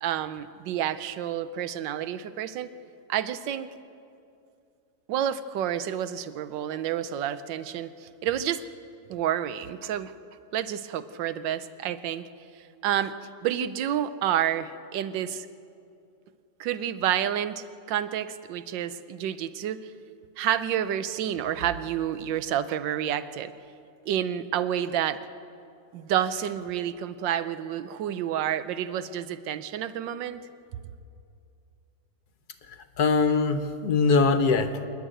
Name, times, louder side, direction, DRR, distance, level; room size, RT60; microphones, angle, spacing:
voice 1, 0.0-2.7 3.1-3.7 5.1-8.6 9.1-10.1 10.5-12.3 12.8-13.1 13.4-15.5 16.6-19.8 20.4-23.5 24.1-25.2 25.9-30.4, right 10 dB, 80° right, 13 dB, 1.4 m, -29 dB
voice 2, 33.0-34.9, left 4 dB, 60° left, 9 dB, 1.4 m, -22 dB
27.0 x 11.0 x 9.0 m, 2.5 s
omnidirectional pair, 2.0 m